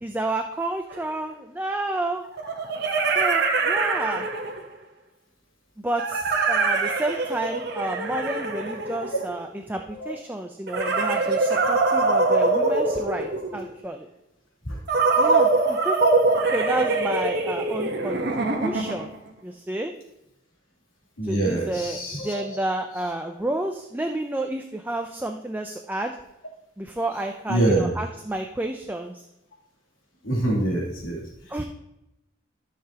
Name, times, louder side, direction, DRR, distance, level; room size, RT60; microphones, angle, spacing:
voice 1, 0.0-2.2 3.1-4.3 5.8-14.1 15.2-16.0 16.5-19.1 19.4-19.9 21.3-26.2 26.8-29.2 31.5-31.6, right 1 dB, 10° right, 4 dB, 0.5 m, -30 dB
sound 1, 0.9-1.0 2.4-4.7 6.0-9.5 10.7-13.7 14.9-19.2, right 3 dB, 55° right, 1.1 m, -23 dB
voice 2, 21.2-22.4 27.5-27.9 30.2-31.2, right 2 dB, 85° left, -4 dB, 3.0 m, -25 dB
13.5 x 6.8 x 2.9 m, 0.88 s
head